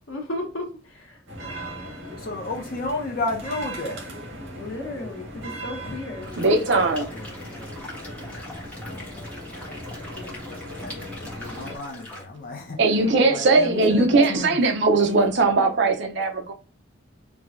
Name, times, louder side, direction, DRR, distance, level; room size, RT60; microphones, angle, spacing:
voice 1, 0.1-1.9 4.6-6.3 8.9-9.4 15.6-15.7, left 1 dB, 80° left, 1.2 m, -36 dB
sound 1, 1.3-11.8, equal, 75° right, 1.6 m, -38 dB
voice 2, 2.2-4.0 7.1-7.7 10.3-12.8 13.2-14.6, left 2 dB, 45° left, 0.7 m, -33 dB
sound 2, 6.2-12.2, left 1 dB, 5° left, 1.1 m, -42 dB
voice 3, 6.4-7.1 12.8-16.5, right 3 dB, 55° right, 0.6 m, -19 dB
4.6 x 2.2 x 2.5 m
head